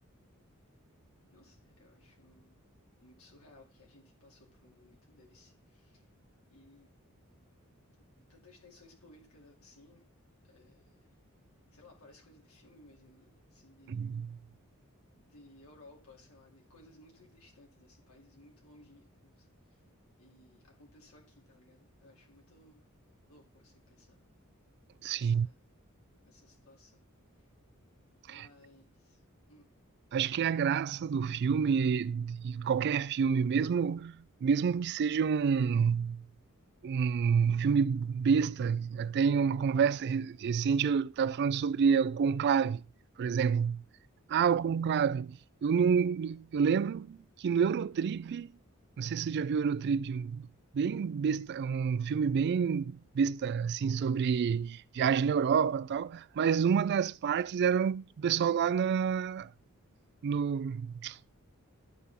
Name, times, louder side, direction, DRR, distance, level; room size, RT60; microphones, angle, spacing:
voice 1, 1.3-2.6 3.0-6.1 6.5-6.9 8.2-10.0 10.4-11.1 11.7-14.1 15.2-19.8 20.2-22.9 23.3-24.2 25.1-25.7 26.3-27.1 27.4-27.5 28.3-29.7 44.4-44.8, left 2 dB, 85° left, 2.5 m, -60 dB
voice 2, 13.9-14.4 25.0-25.5 28.3-28.5 30.1-36.2 36.8-42.8 43.2-43.8 44.3-48.5 49.0-50.5 50.7-59.5 60.2-61.2, right 6 dB, 50° right, 0.3 m, -28 dB
12.5 x 5.7 x 3.5 m
head